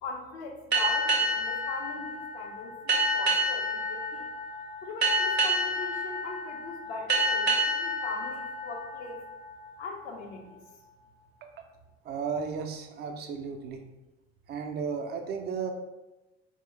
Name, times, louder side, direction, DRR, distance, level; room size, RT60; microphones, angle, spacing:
voice 1, 0.0-4.3 4.8-9.3 9.8-10.6, left 3 dB, 65° left, 2 dB, 0.6 m, -40 dB
sound 1, 0.7-9.9, right 1 dB, 90° right, 0.5 m, -29 dB
voice 2, 12.0-13.8 14.5-15.7, right 6 dB, 35° right, 5 dB, 0.4 m, -34 dB
4.3 x 2.0 x 3.1 m, 1.0 s
figure-of-eight pair, 55°, 32 cm